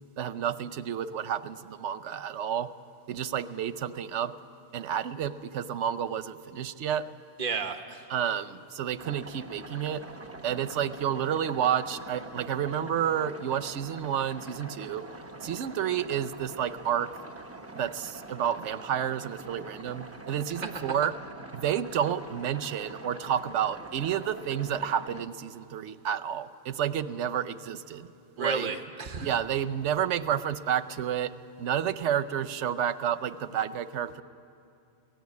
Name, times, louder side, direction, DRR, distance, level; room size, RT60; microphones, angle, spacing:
voice 1, 0.2-2.7 3.1-4.3 4.7-7.0 8.1-10.0 10.4-15.0 15.4-17.1 17.7-21.1 21.5-28.1 28.4-28.7 29.2-31.3 31.6-34.2, right 9 dB, 85° right, 14 dB, 1.0 m, -30 dB
voice 2, 7.4-8.0 20.6-20.9 28.4-29.3, right 4 dB, 40° right, 5 dB, 1.2 m, -32 dB
sound 1, 9.0-25.2, right 2 dB, 15° right, 0.9 m, -45 dB
22.5 x 17.0 x 9.5 m, 2.6 s
omnidirectional pair, 1.2 m